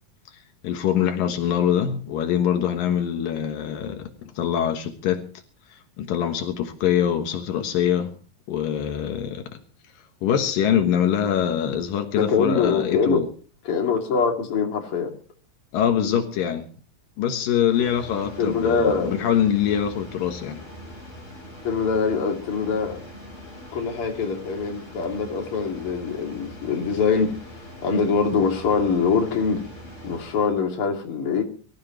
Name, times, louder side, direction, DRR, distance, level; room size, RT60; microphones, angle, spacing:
voice 1, 0.6-5.3 6.0-8.1 8.5-9.4 10.2-13.3 15.7-16.7 17.2-20.6, left 9 dB, 80° left, 3.1 m, -24 dB
voice 2, 12.2-13.2 13.6-15.1 18.4-19.2 21.6-23.0 23.7-27.3 27.8-29.6 30.0-31.4, left 5 dB, 40° left, 3.2 m, -23 dB
sound 1, 17.7-30.7, equal, 20° left, 6.8 m, -42 dB
24.0 x 14.5 x 3.1 m
omnidirectional pair, 4.0 m